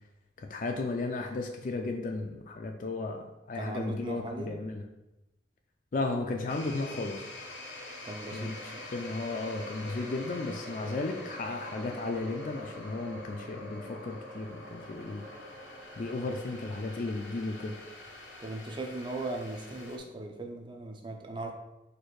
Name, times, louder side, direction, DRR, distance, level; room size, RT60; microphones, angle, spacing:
voice 1, 0.4-4.8 5.9-7.3 8.3-15.2 16.0-17.8, left 3 dB, 45° left, 3 dB, 0.3 m, -34 dB
voice 2, 3.5-4.6 8.0-8.9 18.4-21.5, right 2 dB, 25° right, 4 dB, 0.5 m, -38 dB
sound 1, 6.5-20.0, left 1 dB, 85° left, 0.7 m, -45 dB
4.4 x 2.5 x 4.6 m, 0.95 s
head